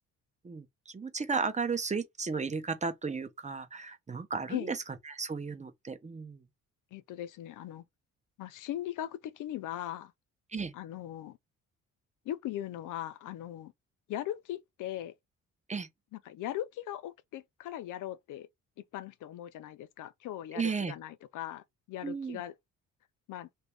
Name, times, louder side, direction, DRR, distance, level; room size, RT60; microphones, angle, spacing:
voice 1, 0.4-4.8 5.0-6.4 10.5-10.7 15.7-15.9 20.5-20.9 22.0-22.4, right 5 dB, 20° right, 0.7 m, -34 dB
voice 2, 6.9-7.8 8.4-10.1 10.7-11.4 12.3-13.7 14.1-15.1 16.1-18.5 18.9-22.5 23.3-23.5, left 12 dB, 70° left, 0.5 m, -39 dB
2.8 x 2.6 x 3.3 m
cardioid pair, 90°, 32 cm